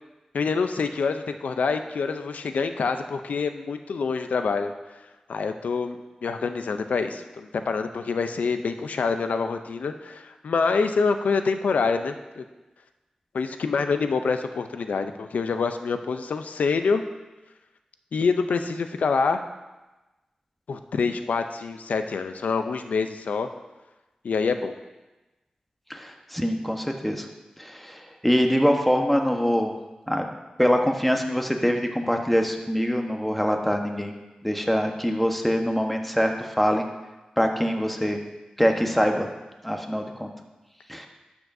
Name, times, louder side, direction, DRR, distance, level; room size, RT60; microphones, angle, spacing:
voice 1, 0.3-4.7 5.3-12.4 13.3-17.0 18.1-19.4 20.7-23.5 24.2-24.7, left 5 dB, 90° left, 8 dB, 0.5 m, -26 dB
voice 2, 25.9-27.3 27.6-29.7 30.1-30.3 30.6-34.1 34.4-36.9 37.4-38.2 38.6-39.3 39.6-40.3 40.9-41.1, equal, 5° left, 3 dB, 1.1 m, -24 dB
12.5 x 7.1 x 2.6 m, 1.1 s
cardioid pair, 50°, 2 cm